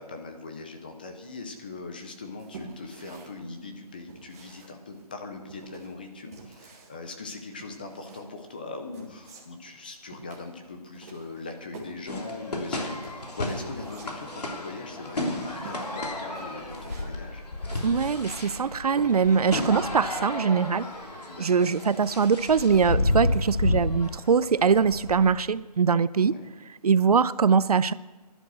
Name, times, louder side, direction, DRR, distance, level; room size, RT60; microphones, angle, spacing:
voice 1, 0.0-17.4 19.9-20.2 21.3-21.5 26.2-26.5, left 3 dB, 15° left, 5 dB, 0.6 m, -41 dB
sound 1, 2.0-19.5, right 3 dB, 25° right, 2.0 m, -48 dB
sound 2, 12.1-25.3, left 2 dB, 75° left, 3.1 m, -31 dB
voice 2, 17.8-20.9 21.4-26.3 26.8-27.9, right 6 dB, 65° right, 17 dB, 0.5 m, -22 dB
12.0 x 11.0 x 6.2 m, 1.2 s
hypercardioid pair, 170°, 21 cm